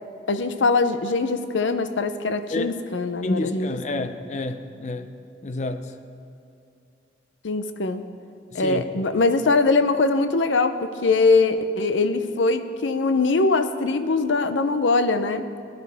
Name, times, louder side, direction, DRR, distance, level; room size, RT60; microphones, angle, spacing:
voice 1, 0.3-4.1 7.4-8.0 8.5-15.5, left 3 dB, 80° left, 10 dB, 0.6 m, -22 dB
voice 2, 3.2-5.1 5.4-5.9 8.5-8.8, left 2 dB, 40° left, 9 dB, 0.5 m, -29 dB
16.5 x 10.5 x 3.5 m, 2.6 s
head